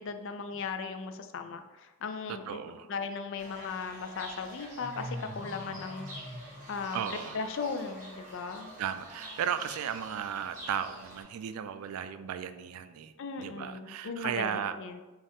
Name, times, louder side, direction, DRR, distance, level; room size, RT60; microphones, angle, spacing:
voice 1, 0.0-2.6 2.9-6.1 6.7-8.7 13.2-15.0, left 5 dB, 60° left, 8 dB, 0.4 m, -37 dB
voice 2, 2.3-2.9 6.9-7.4 8.8-13.1 13.4-14.8, right 8 dB, 85° right, 13 dB, 0.3 m, -35 dB
Fowl / Bird, 3.4-11.2, equal, 35° right, 1.2 m, -45 dB
5.2 x 2.4 x 3.5 m, 1.2 s
head